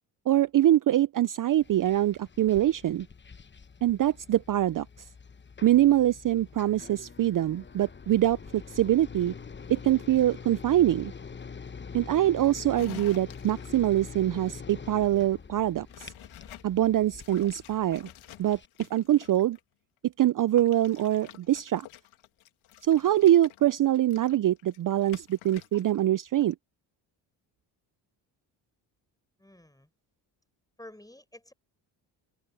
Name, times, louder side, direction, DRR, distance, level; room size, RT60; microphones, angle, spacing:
voice 1, 0.3-3.1 3.8-4.9 5.6-9.3 9.7-11.1 11.9-16.1 16.6-18.1 18.4-18.6 18.9-19.6 20.2-21.9 22.8-26.5, right 13 dB, 40° right, 0.6 m, -24 dB
sound 1, 1.6-18.7, left 5 dB, 20° left, 1.0 m, -45 dB
sound 2, 12.7-14.0 15.9-16.7 17.1-19.6 20.6-26.0 26.3-26.5, left 14 dB, 75° left, 2.4 m, -50 dB
voice 2, 29.4-29.9 30.8-31.5, left 1 dB, 5° left, 5.3 m, -50 dB
open air
supercardioid pair, 60°, 49 cm